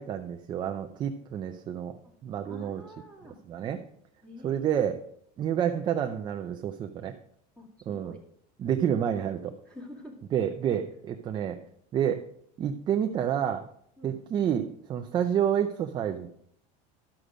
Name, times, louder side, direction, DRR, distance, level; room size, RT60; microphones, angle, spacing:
voice 1, 0.0-1.9 2.2-2.8 3.5-3.8 4.4-5.0 5.4-7.1 7.9-8.2 8.6-9.5 10.3-11.6 11.9-12.2 12.6-13.7 14.0-16.4, right 9 dB, 25° right, 4 dB, 0.5 m, -29 dB
voice 2, 2.5-3.4 4.2-4.8 7.6-8.2 9.7-10.2 14.0-14.2, equal, 5° left, -1 dB, 2.2 m, -47 dB
13.0 x 6.6 x 5.0 m, 0.67 s
cardioid pair, 180°, 20 cm